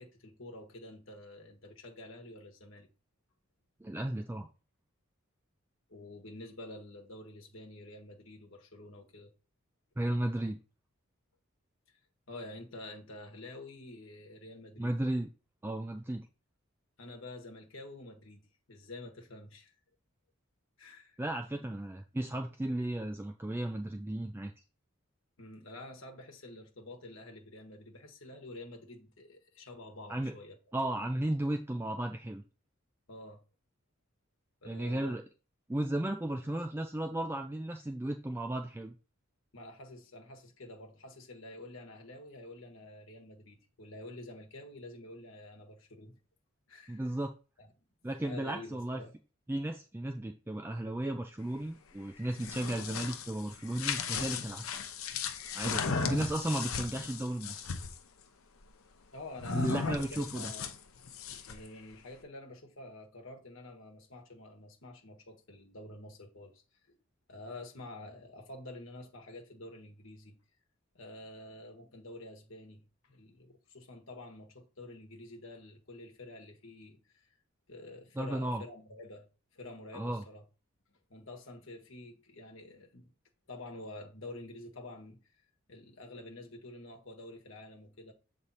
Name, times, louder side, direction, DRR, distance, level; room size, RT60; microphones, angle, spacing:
voice 1, 0.0-2.9 5.9-9.3 12.3-14.9 17.0-18.4 18.7-19.7 20.8-21.2 21.6-21.7 25.4-30.6 33.1-33.4 34.6-35.2 39.5-46.2 46.7-47.1 47.6-47.7 48.2-49.1 55.9-56.1 59.1-60.7 61.4-66.6 66.9-67.0 67.3-70.3 70.9-77.3 77.7-79.3 79.5-80.4 81.1-83.1 83.5-85.2 85.7-88.1, left 1 dB, 70° left, 1.3 m, -48 dB
voice 2, 3.8-4.5 10.0-10.6 14.8-15.3 15.6-16.3 21.2-24.5 30.1-30.3 30.7-32.4 34.7-35.2 35.7-38.9 46.9-47.3 48.0-49.0 49.5-54.9 55.5-57.7 59.5-60.5 78.2-78.6 79.9-80.2, right 1 dB, 10° right, 0.4 m, -34 dB
sound 1, 52.2-58.0 59.4-61.7, left 5 dB, 85° left, 0.7 m, -36 dB
7.2 x 3.3 x 4.1 m
head